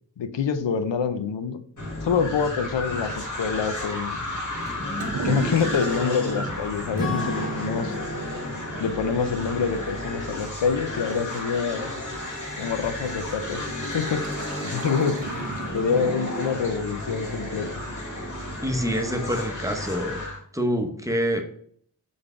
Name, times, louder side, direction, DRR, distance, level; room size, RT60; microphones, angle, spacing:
voice 1, 0.2-1.6 2.0-4.2 5.2-8.0 8.8-11.9 12.6-15.2 15.7-17.7, left 6 dB, 85° left, 9 dB, 0.5 m, -26 dB
sound 1, 1.8-20.4, left 1 dB, 45° left, 1.5 m, -32 dB
Toilet flush / Liquid, 4.7-16.3, right 5 dB, 90° right, 0.7 m, -40 dB
Acoustic guitar / Strum, 7.0-10.9, equal, 20° left, 1.8 m, -35 dB
voice 2, 18.6-20.2 20.5-21.4, equal, 10° right, 4 dB, 0.7 m, -26 dB
3.9 x 3.4 x 3.5 m, 0.63 s
wide cardioid pair, 45°, 43 cm